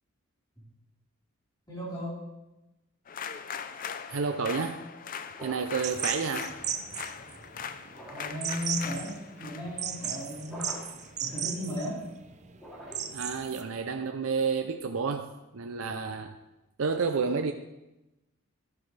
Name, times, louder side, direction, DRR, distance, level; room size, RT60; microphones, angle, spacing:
voice 1, 1.7-2.2 8.1-10.7 11.2-12.0, left 1 dB, 20° left, -6 dB, 4.2 m, -35 dB
sound 1, 3.1-11.4, left 7 dB, 40° left, 0.5 m, -41 dB
voice 2, 4.1-4.8 5.4-6.5 13.1-16.4 16.8-17.5, right 5 dB, 75° right, 5 dB, 0.6 m, -30 dB
sound 2, 5.3-5.9 7.9-8.5 10.4-11.1 12.5-13.3, right 1 dB, ahead, 2.8 m, -45 dB
sound 3, 5.8-13.6, right 8 dB, 35° right, 0.7 m, -36 dB
13.0 x 11.0 x 3.3 m, 0.98 s
head